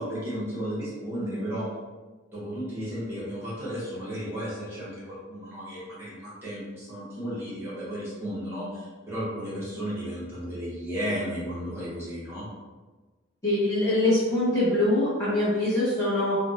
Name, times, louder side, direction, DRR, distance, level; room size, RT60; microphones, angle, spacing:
voice 1, 0.0-1.7 2.3-12.5, equal, 10° right, -9 dB, 0.9 m, -34 dB
voice 2, 13.4-16.4, left 1 dB, 15° left, -10 dB, 0.8 m, -23 dB
2.4 x 2.0 x 3.9 m, 1.3 s
head